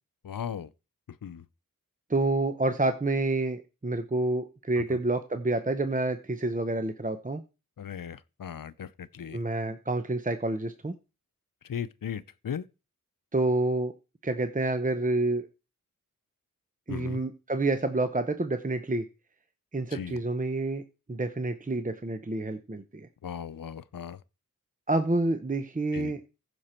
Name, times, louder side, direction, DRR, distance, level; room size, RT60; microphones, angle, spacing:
voice 1, 0.2-0.7 1.2-1.4 7.8-9.4 11.7-12.6 16.9-17.2 19.9-20.2 23.2-24.2 25.9-26.1, left 8 dB, 75° left, 0.6 m, -37 dB
voice 2, 2.1-7.4 9.3-10.9 13.3-13.9 14.2-15.5 16.9-19.1 19.7-20.8 21.1-23.1 24.9-26.2, right 2 dB, 25° right, 0.8 m, -28 dB
15.0 x 6.1 x 4.4 m
wide cardioid pair, 65°, 34 cm